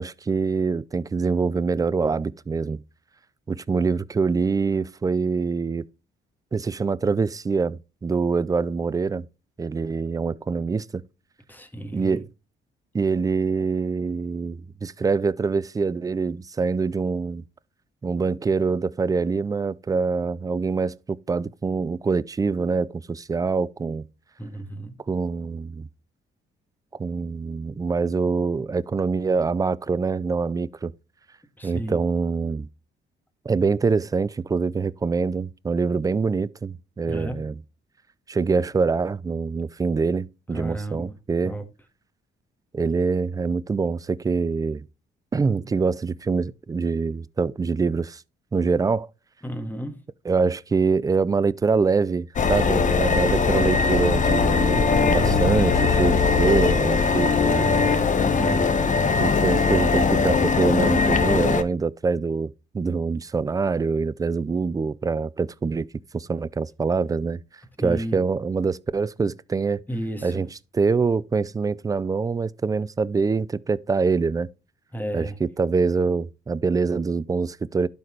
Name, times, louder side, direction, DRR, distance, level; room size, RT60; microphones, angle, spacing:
voice 1, 0.0-2.8 3.5-5.8 6.5-9.3 9.6-11.0 11.9-12.3 12.9-17.4 18.0-24.1 25.1-25.9 27.0-30.9 31.6-32.7 33.5-37.5 38.3-41.5 42.7-44.9 45.3-48.2 48.5-49.1 50.3-57.7 59.0-65.9 66.1-67.4 67.8-69.8 70.2-70.5 70.7-74.5 75.1-77.9, right 4 dB, 20° right, 0.3 m, -25 dB
voice 2, 11.5-12.2 24.4-24.9 31.6-32.0 37.0-37.4 40.5-41.1 41.4-41.6 49.4-50.0 54.7-55.5 57.5-58.7 67.8-68.2 69.9-70.4 74.9-75.4, right 1 dB, 10° left, 1.6 m, -32 dB
sound 1, 52.4-61.6, left 5 dB, 40° left, 0.9 m, -20 dB
Keyboard (musical), 55.2-58.9, left 5 dB, 70° left, 1.1 m, -37 dB
12.0 x 4.1 x 3.2 m
cardioid pair, 90°, 20 cm